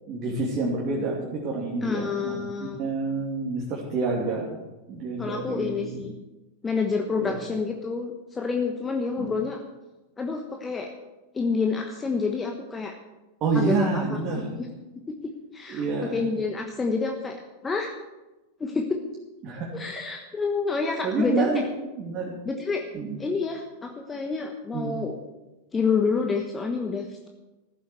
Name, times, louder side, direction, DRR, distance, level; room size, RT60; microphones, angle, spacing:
voice 1, 0.1-4.6 4.9-6.0 7.2-7.4 9.2-9.3 13.4-14.6 15.7-16.3 19.4-19.7 21.0-21.6 22.0-22.3 22.9-23.2 24.7-25.0, right 3 dB, 35° right, -3 dB, 2.8 m, -28 dB
voice 2, 1.8-2.8 5.2-6.1 6.6-9.6 10.2-10.9 11.3-12.9 13.5-14.2 14.6-14.7 15.1-17.9 18.6-19.0 19.7-21.5 22.4-22.9 23.2-25.2 25.7-27.3, left 4 dB, 15° left, 3 dB, 1.2 m, -28 dB
15.0 x 7.8 x 7.8 m, 1.1 s
figure-of-eight pair, 90°, 0 cm